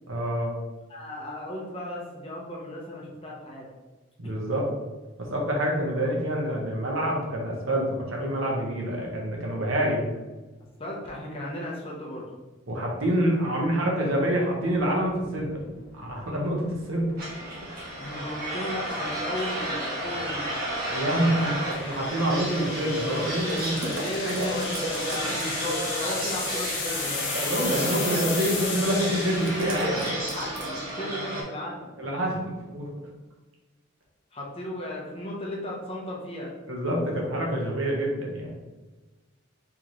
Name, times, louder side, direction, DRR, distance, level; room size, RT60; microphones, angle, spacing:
voice 1, 0.1-0.6 4.2-4.6 5.2-10.1 12.7-15.5 15.9-17.1 20.9-21.5 21.8-23.8 24.3-24.4 27.3-29.9 32.0-32.9 36.7-38.5, right 1 dB, 85° right, -2 dB, 1.1 m, -27 dB
voice 2, 0.9-3.7 10.8-12.2 18.0-20.6 21.0-21.6 23.7-27.2 29.8-31.9 34.3-36.5, left 1 dB, 30° left, -3 dB, 0.9 m, -35 dB
sound 1, 14.8-30.9, left 4 dB, 60° left, 0.9 m, -36 dB
sound 2, 17.2-31.4, right 1 dB, 45° right, 1.4 m, -32 dB
sound 3, 23.5-25.7 26.9-28.2 29.4-30.9, right 1 dB, 65° right, 0.8 m, -37 dB
4.4 x 3.5 x 3.1 m, 1.2 s
head